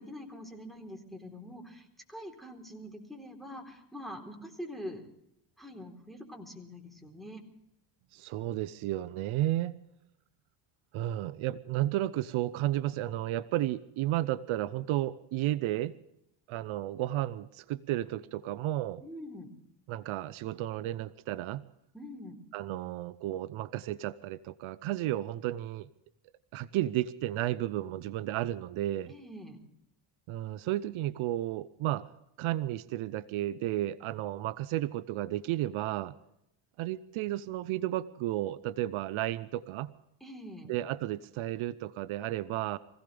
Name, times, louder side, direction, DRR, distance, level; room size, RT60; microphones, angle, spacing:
voice 1, 0.0-5.0 5.6-7.4 19.0-19.5 21.9-22.4 29.1-29.6 40.2-40.7, equal, ahead, 3 dB, 3.9 m, -44 dB
voice 2, 8.1-9.7 10.9-15.9 16.5-19.0 19.9-21.6 22.5-25.9 26.5-29.1 30.3-32.1 32.4-36.2 36.8-39.9 40.7-42.8, right 14 dB, 75° right, 15 dB, 0.8 m, -33 dB
24.5 x 16.5 x 3.4 m, 0.79 s
cardioid pair, 115°, 49 cm